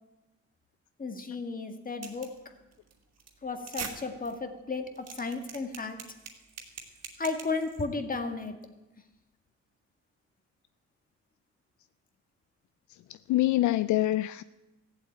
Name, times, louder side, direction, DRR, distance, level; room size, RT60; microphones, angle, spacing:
voice 1, 1.0-2.4 3.4-6.0 7.2-8.5, left 3 dB, 30° left, 1.9 m, -34 dB
sound 1, 2.0-2.4 2.7-2.9 3.2-3.3 3.6-3.9 4.2-4.3 4.7-7.8, right 6 dB, 60° right, 2.6 m, -41 dB
voice 2, 12.9-14.4, left 15 dB, 70° left, 0.5 m, -26 dB
15.0 x 7.9 x 9.2 m
cardioid pair, 90°, 30 cm